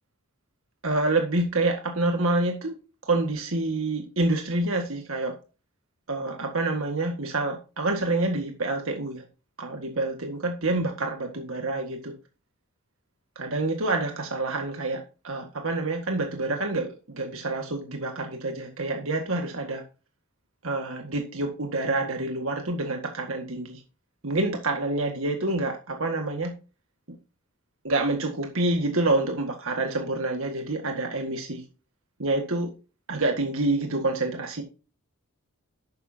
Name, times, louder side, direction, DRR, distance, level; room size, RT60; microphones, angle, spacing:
voice 1, 0.8-2.8 3.0-5.4 6.1-9.2 9.6-12.2 13.4-19.8 20.6-23.8 24.2-26.5 27.8-31.6 32.2-32.7 33.1-34.6, right 2 dB, 65° right, 4 dB, 1.8 m, -27 dB
12.5 x 9.4 x 2.8 m, 0.33 s
head